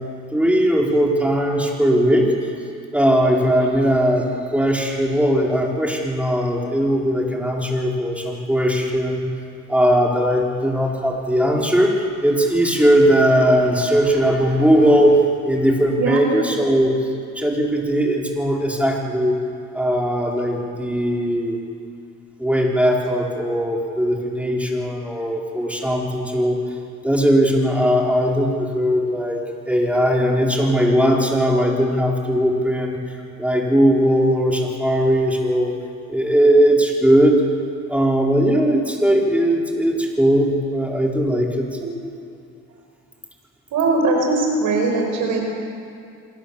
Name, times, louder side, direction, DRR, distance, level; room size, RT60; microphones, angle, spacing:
voice 1, 0.3-2.5 2.9-4.2 4.5-9.3 9.7-17.0 17.3-19.3 19.7-21.6 22.4-26.6 27.0-35.7 36.1-37.4 37.9-41.7, equal, 5° right, -2 dB, 4.9 m, -19 dB
voice 2, 43.7-45.4, right 3 dB, 85° right, 1 dB, 5.0 m, -20 dB
26.5 x 18.0 x 7.4 m, 2.4 s
cardioid pair, 90°, 30 cm